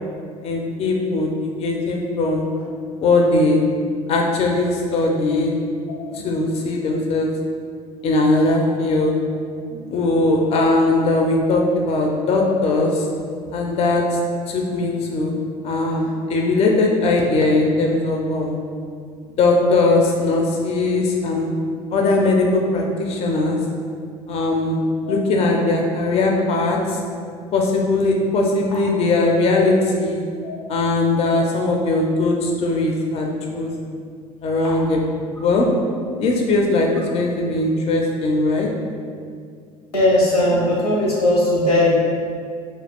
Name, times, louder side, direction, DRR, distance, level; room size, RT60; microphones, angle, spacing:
voice 1, 0.4-2.5 3.0-3.6 4.1-5.5 6.1-7.3 8.0-9.1 9.9-13.1 13.5-14.0 14.5-15.3 15.6-18.6 19.4-21.5 21.9-23.6 24.3-24.8 25.1-27.0 27.5-30.2 30.7-33.7 34.4-35.1 35.4-35.7 36.2-38.7, left 2 dB, 35° left, 0 dB, 0.4 m, -19 dB
voice 2, 39.9-41.9, left 1 dB, 90° left, -6 dB, 0.9 m, -18 dB
2.4 x 2.3 x 3.4 m, 2.2 s
hypercardioid pair, 70°, 19 cm